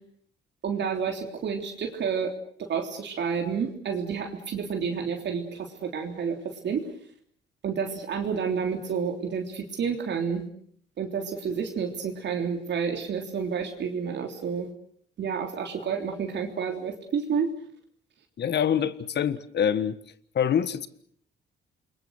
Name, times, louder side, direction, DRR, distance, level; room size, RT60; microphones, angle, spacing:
voice 1, 0.6-2.3 2.6-6.8 7.6-10.4 11.0-14.7 15.2-17.5, right 6 dB, 60° right, 3 dB, 3.4 m, -30 dB
voice 2, 18.4-20.0 20.3-20.9, left 8 dB, 60° left, 14 dB, 1.6 m, -25 dB
28.5 x 23.0 x 6.5 m, 0.62 s
cardioid pair, 90°, 20 cm